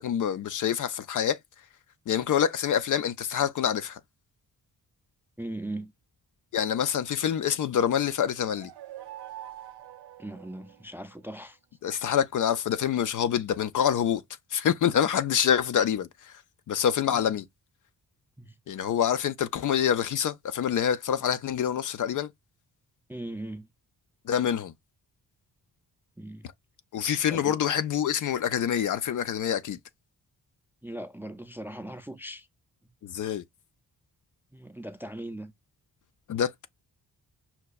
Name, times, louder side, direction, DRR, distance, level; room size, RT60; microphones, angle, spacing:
voice 1, 0.0-1.4 2.1-4.0 6.5-8.7 11.8-14.2 14.5-16.4 16.7-17.5 18.7-22.3 24.3-24.7 26.9-29.8 33.0-33.4 36.3-36.7, left 9 dB, 55° left, 0.4 m, -26 dB
voice 2, 5.4-5.9 10.2-11.6 17.1-17.3 18.4-18.6 23.1-23.7 26.2-26.5 27.3-27.6 30.8-32.5 34.5-35.5, right 1 dB, 5° right, 0.4 m, -39 dB
sound 1, 8.2-11.1, right 12 dB, 80° right, 0.6 m, -45 dB
5.7 x 2.2 x 2.2 m
cardioid pair, 90°, 38 cm